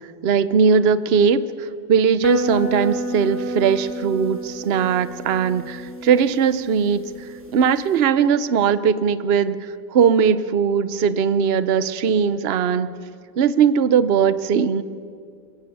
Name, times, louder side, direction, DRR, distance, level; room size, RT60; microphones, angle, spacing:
voice 1, 0.2-7.1 7.5-12.9 13.4-14.8, right 6 dB, 65° right, 14 dB, 0.6 m, -19 dB
sound 1, 2.2-8.0, right 1 dB, 5° right, 2.0 m, -31 dB
22.5 x 22.5 x 8.7 m, 2.3 s
omnidirectional pair, 2.1 m